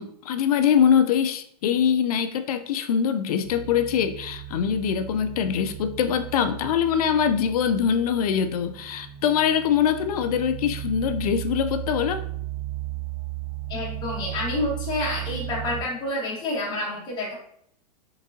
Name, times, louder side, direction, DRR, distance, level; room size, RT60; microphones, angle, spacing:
voice 1, 0.0-12.3, left 8 dB, 65° left, 9 dB, 0.4 m, -23 dB
sound 1, 3.4-15.8, right 15 dB, 85° left, 1.2 m, -35 dB
voice 2, 13.7-17.3, left 1 dB, 20° left, -5 dB, 1.4 m, -28 dB
3.8 x 3.6 x 2.7 m, 0.67 s
hypercardioid pair, 145°, 21 cm